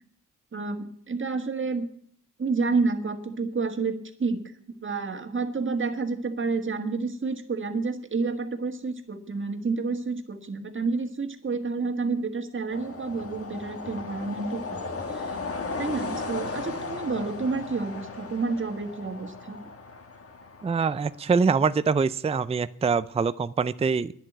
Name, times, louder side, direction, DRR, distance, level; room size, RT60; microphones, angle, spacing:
voice 1, 0.5-1.9 2.4-4.4 4.8-15.3 15.8-19.6, right 4 dB, 40° right, 6 dB, 1.7 m, -29 dB
sound 1, 12.7-21.2, left 3 dB, 45° left, 1.5 m, -36 dB
voice 2, 20.6-24.1, right 5 dB, 20° right, 14 dB, 0.4 m, -24 dB
10.5 x 7.4 x 9.2 m, 0.63 s
cardioid pair, 85°, 32 cm